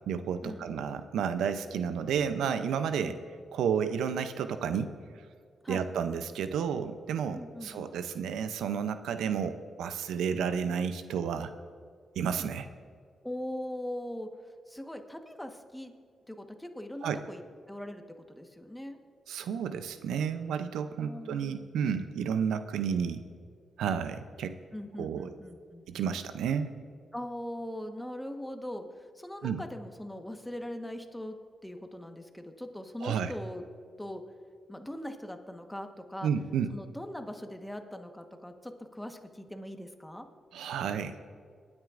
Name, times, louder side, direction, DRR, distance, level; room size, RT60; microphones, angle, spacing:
voice 1, 0.1-3.2 3.5-4.9 5.7-11.5 12.2-12.7 17.0-17.2 19.3-23.2 23.8-24.5 25.0-25.3 25.9-26.7 29.4-29.6 33.0-33.3 36.2-36.7 40.5-41.1, right 7 dB, 90° right, 10 dB, 0.5 m, -31 dB
voice 2, 7.3-7.9 13.2-14.3 14.7-15.9 16.3-17.4 17.7-19.0 21.0-21.9 24.7-26.1 27.1-28.9 29.1-31.4 31.6-33.6 34.0-34.2 34.7-36.3 36.7-40.3, left 1 dB, 5° left, 5 dB, 1.2 m, -41 dB
22.0 x 9.6 x 2.5 m, 2.1 s
cardioid pair, 60°, 0 cm